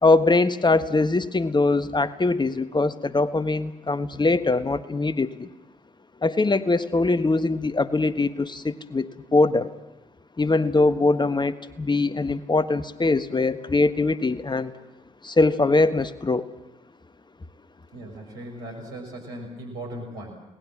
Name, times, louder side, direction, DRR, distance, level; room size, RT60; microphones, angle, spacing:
voice 1, 0.0-5.5 6.2-9.7 10.4-14.7 15.2-16.5, left 3 dB, 25° left, 12 dB, 1.5 m, -22 dB
voice 2, 17.9-20.4, right 1 dB, 80° right, 2 dB, 6.1 m, -38 dB
29.0 x 19.0 x 7.5 m, 0.95 s
hypercardioid pair, 45°, 17 cm